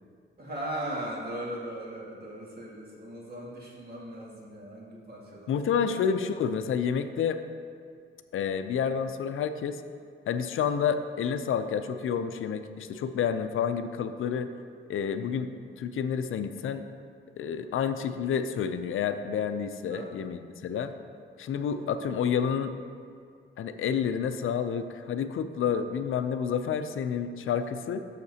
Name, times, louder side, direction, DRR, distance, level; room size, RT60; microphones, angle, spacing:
voice 1, 0.4-5.9 19.9-20.1 21.7-21.9, right 1 dB, 50° right, -4 dB, 1.9 m, -38 dB
voice 2, 5.5-7.4 8.3-9.8 10.3-14.5 14.9-15.5 15.8-16.8 17.4-20.9 21.4-22.7 23.6-28.0, left 7 dB, 75° left, 9 dB, 0.5 m, -29 dB
11.5 x 6.4 x 2.8 m, 2.2 s
wide cardioid pair, 125°, 21 cm